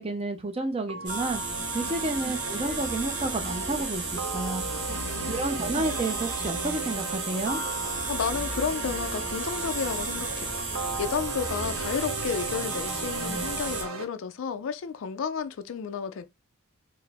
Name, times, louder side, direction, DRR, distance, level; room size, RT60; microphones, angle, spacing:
voice 1, 0.0-1.4 1.7-4.7 5.3-7.6, right 2 dB, 25° right, 0.5 m, -30 dB
sound 1, 0.9-14.0, right 3 dB, 75° right, 0.7 m, -36 dB
sound 2, 1.1-13.8, right 3 dB, 50° right, 1.2 m, -34 dB
Female singing, 2.5-9.0, right 1 dB, ahead, 0.9 m, -48 dB
voice 2, 4.9-5.4 8.1-16.2, left 6 dB, 70° left, 0.4 m, -32 dB
4.6 x 2.0 x 3.4 m
head